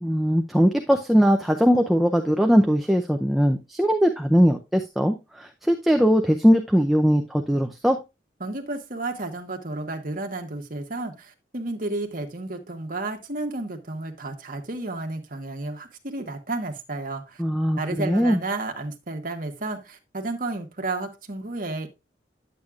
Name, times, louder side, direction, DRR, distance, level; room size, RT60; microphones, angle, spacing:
voice 1, 0.0-8.0 17.4-18.4, equal, ahead, 0.5 m, -20 dB
voice 2, 8.4-17.4 17.8-21.9, right 2 dB, 50° right, 1.3 m, -32 dB
10.0 x 8.1 x 2.4 m
head